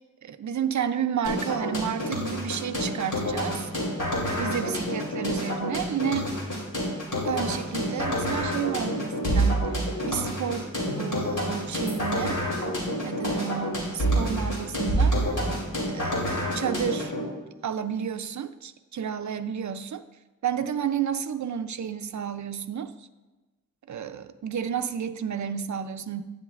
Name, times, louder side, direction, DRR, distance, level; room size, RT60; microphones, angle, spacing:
voice 1, 0.2-3.7 4.4-6.3 7.2-12.4 13.0-15.4 15.9-16.1 16.5-17.1 17.6-20.0 20.4-23.1 23.9-26.2, right 8 dB, 60° right, 9 dB, 0.5 m, -31 dB
sound 1, 1.2-17.2, equal, 75° left, 2.9 m, -28 dB
11.5 x 9.2 x 2.5 m, 1.2 s
wide cardioid pair, 80°, 32 cm